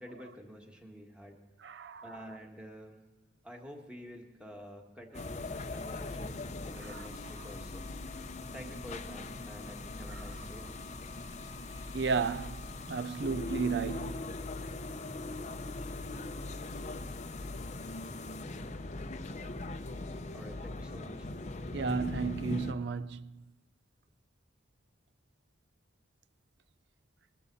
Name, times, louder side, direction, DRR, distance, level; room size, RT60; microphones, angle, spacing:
voice 1, 0.0-1.4 2.0-3.0 3.4-7.9 8.5-10.7 20.3-21.3, equal, 5° right, 1.8 m, -49 dB
voice 2, 1.6-2.2 6.9-7.0 10.1-10.2 11.9-14.4 21.7-23.4, right 5 dB, 65° right, 0.4 m, -34 dB
sound 1, 5.1-22.7, left 2 dB, 40° left, 0.7 m, -40 dB
22.0 x 12.0 x 4.1 m
head